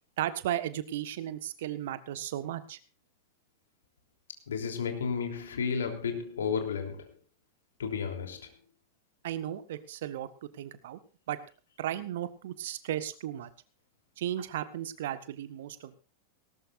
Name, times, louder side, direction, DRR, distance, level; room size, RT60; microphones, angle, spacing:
voice 1, 0.2-2.8 9.2-11.0 11.3-11.4 11.8-13.5 14.2-16.0, right 12 dB, 55° right, 1.4 m, -35 dB
voice 2, 4.5-7.1 7.8-8.5, left 6 dB, 65° left, 3.3 m, -32 dB
18.5 x 18.5 x 2.6 m
figure-of-eight pair, 90°, 0 cm